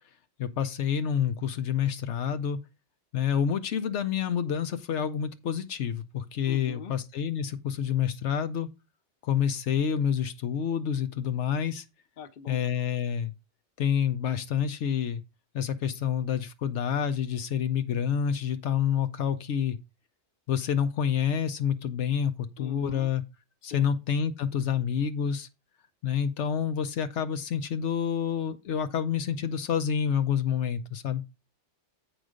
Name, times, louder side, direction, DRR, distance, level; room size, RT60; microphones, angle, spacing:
voice 1, 0.4-2.6 3.1-8.7 9.2-11.8 12.5-13.3 13.8-15.2 15.5-19.8 20.5-23.2 23.6-25.5 26.0-31.2, left 8 dB, 85° left, 1.0 m, -28 dB
voice 2, 6.5-6.9 12.2-12.6 22.6-23.1 23.6-23.9, left 5 dB, 55° left, 1.0 m, -42 dB
7.9 x 5.0 x 5.0 m
omnidirectional pair, 1.2 m